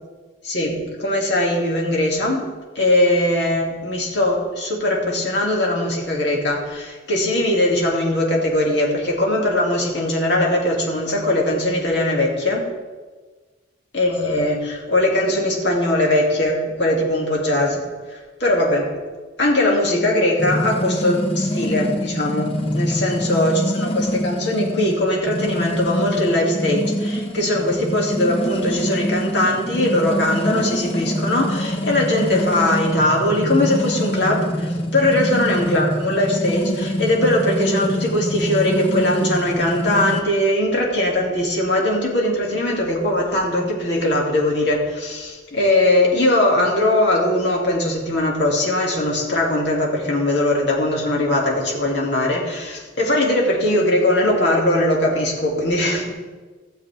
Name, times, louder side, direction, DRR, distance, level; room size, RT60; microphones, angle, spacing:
voice 1, 0.4-2.4 2.7-12.6 13.9-19.0 19.4-56.1, left 1 dB, 60° left, -2 dB, 2.4 m, -20 dB
sound 1, 20.4-40.2, equal, 30° left, 0.7 m, -25 dB
16.0 x 7.3 x 3.4 m, 1.3 s
head